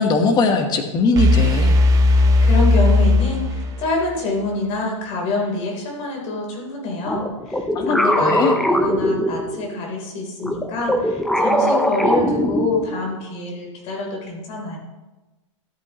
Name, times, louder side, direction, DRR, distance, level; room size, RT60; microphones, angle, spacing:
voice 1, 0.0-1.7 7.7-8.6, left 3 dB, 25° left, 6 dB, 1.2 m, -20 dB
sound 1, 1.2-4.1, left 2 dB, 20° right, 1.0 m, -16 dB
voice 2, 2.1-14.8, left 2 dB, 40° left, -1 dB, 3.5 m, -26 dB
sound 2, 7.0-9.8 10.4-13.1, equal, ahead, 0.5 m, -21 dB
13.0 x 8.1 x 3.0 m, 1.1 s
hypercardioid pair, 135°, 16 cm